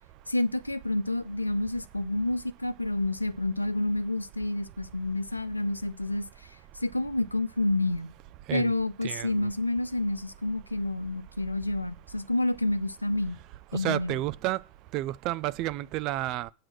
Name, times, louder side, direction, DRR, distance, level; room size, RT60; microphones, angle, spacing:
voice 1, 0.3-6.3 6.8-8.1 8.5-13.4 13.7-14.2, left 2 dB, 85° left, 0.7 m, -29 dB
voice 2, 9.0-9.5 13.7-14.6 14.9-16.5, right 16 dB, 40° right, 0.5 m, -31 dB
8.6 x 6.2 x 7.6 m
figure-of-eight pair, 90°, 0 cm